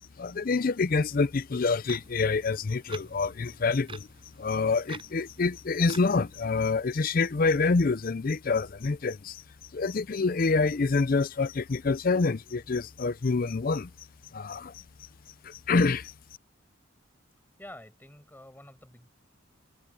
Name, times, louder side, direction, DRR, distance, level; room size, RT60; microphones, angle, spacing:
voice 1, 0.2-4.1 4.4-9.4 9.7-13.9 14.3-14.7 15.4-16.1, left 4 dB, 45° left, 0.5 m, -27 dB
sound 1, 1.6-6.7, right 4 dB, 25° right, 6.6 m, -49 dB
voice 2, 17.6-19.1, left 1 dB, 10° left, 5.6 m, -48 dB
head